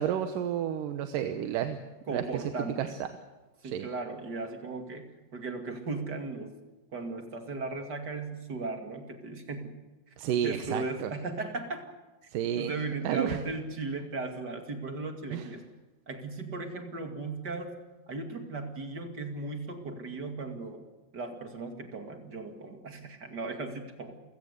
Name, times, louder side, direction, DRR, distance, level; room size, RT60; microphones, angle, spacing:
voice 1, 0.0-1.8 2.1-2.9 3.6-3.9 10.2-11.1 12.3-12.7 13.0-13.4 15.3-15.5, right 9 dB, 85° right, 7 dB, 2.7 m, -31 dB
voice 2, 2.1-3.0 3.6-6.5 6.9-9.8 10.1-10.2 10.4-11.8 12.6-15.6 16.1-17.8 18.1-20.8 21.1-24.1, right 3 dB, 35° right, 5 dB, 2.6 m, -37 dB
29.5 x 16.5 x 8.2 m, 1.2 s
omnidirectional pair, 3.8 m